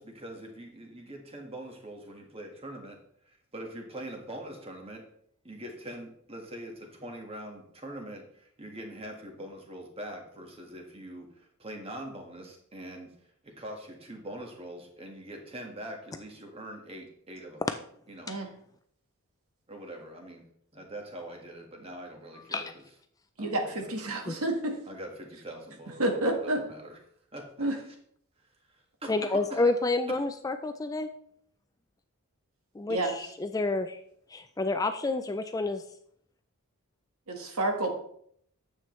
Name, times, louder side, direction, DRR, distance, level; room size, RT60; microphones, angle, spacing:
voice 1, 0.0-3.0 3.3-5.0 5.4-13.1 13.4-17.7 18.1-18.5 19.7-20.4 20.7-22.7 23.4-24.1 24.9-27.0 27.3-27.5 28.7-29.7 30.1-30.2, right 1 dB, 25° right, 2 dB, 1.5 m, -43 dB
voice 2, 23.4-24.8 26.0-26.6 27.6-27.7 32.9-33.1 37.3-37.9, right 1 dB, 75° right, 3 dB, 1.5 m, -29 dB
voice 3, 29.1-31.1 32.8-34.0 34.3-35.8, left 3 dB, 15° left, 8 dB, 0.3 m, -29 dB
9.6 x 7.7 x 3.2 m, 0.66 s
head